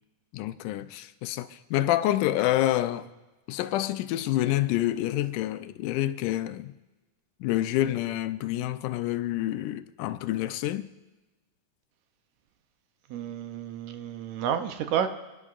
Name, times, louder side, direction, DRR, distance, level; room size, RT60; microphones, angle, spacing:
voice 1, 0.3-3.1 3.5-6.7 7.4-10.9, left 14 dB, 85° left, 2.1 m, -27 dB
voice 2, 13.1-15.1, right 9 dB, 75° right, 2.0 m, -30 dB
28.0 x 11.0 x 2.5 m
omnidirectional pair, 3.6 m